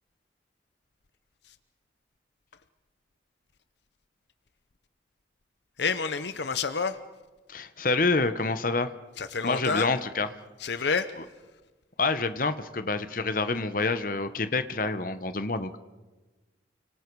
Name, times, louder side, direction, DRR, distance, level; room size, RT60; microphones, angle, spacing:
voice 1, 5.8-7.0 9.2-9.9 10.6-11.1, left 5 dB, 70° left, 11 dB, 0.8 m, -28 dB
voice 2, 7.5-8.9 9.4-10.3 12.0-15.8, left 3 dB, 45° left, 11 dB, 1.0 m, -27 dB
30.0 x 25.0 x 4.8 m, 1.2 s
head